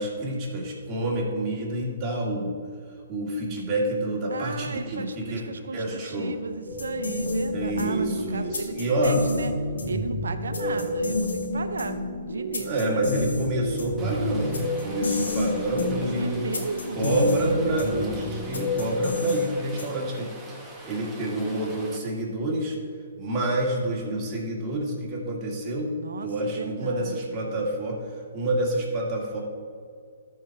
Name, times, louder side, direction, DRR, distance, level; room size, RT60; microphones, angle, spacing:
voice 1, 0.0-2.6 3.1-5.4 5.7-6.4 7.5-9.2 10.6-10.9 12.6-16.4 16.9-20.3 20.9-22.8 23.2-28.0 28.3-29.4, right 1 dB, 25° right, -3 dB, 2.4 m, -28 dB
voice 2, 4.3-9.5 9.8-13.1 16.2-17.0 25.9-27.6, right 4 dB, 85° right, 8 dB, 0.6 m, -35 dB
sound 1, 6.7-20.1, left 2 dB, 85° left, 2.0 m, -29 dB
Rain, 14.0-22.0, right 2 dB, 10° right, 1.4 m, -44 dB
13.5 x 4.6 x 4.6 m, 2.2 s
hypercardioid pair, 145°, 0 cm